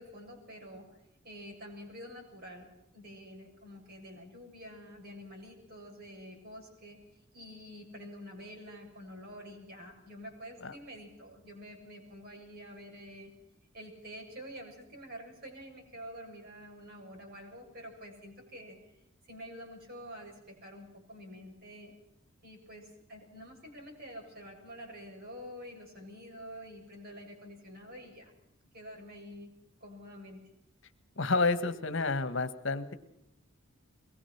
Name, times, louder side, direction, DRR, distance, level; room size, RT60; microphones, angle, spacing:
voice 1, 0.0-13.3 13.7-21.9 22.4-28.3 28.7-29.5 29.8-30.4, equal, 45° right, 1 dB, 7.4 m, -48 dB
voice 2, 31.2-32.9, left 3 dB, 60° left, 11 dB, 1.6 m, -30 dB
23.0 x 21.0 x 5.9 m, 0.81 s
head